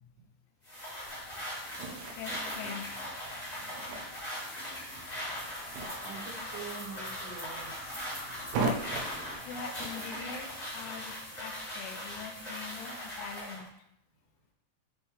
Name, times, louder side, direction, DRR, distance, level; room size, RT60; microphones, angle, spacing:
sound 1, 0.6-13.6, equal, 25° left, 0.8 m, -40 dB
sound 2, 1.1-11.4, right 3 dB, 85° right, 2.9 m, -41 dB
voice 1, 2.2-2.9 8.4-8.5 9.4-13.7, left 6 dB, 85° left, 6 dB, 3.1 m, -43 dB
sound 3, 3.5-9.4, equal, 40° left, 2.1 m, -49 dB
voice 2, 6.0-7.9 12.8-13.0, right 5 dB, 70° right, -8 dB, 3.9 m, -45 dB
8.5 x 4.3 x 3.5 m, 0.77 s
omnidirectional pair, 5.5 m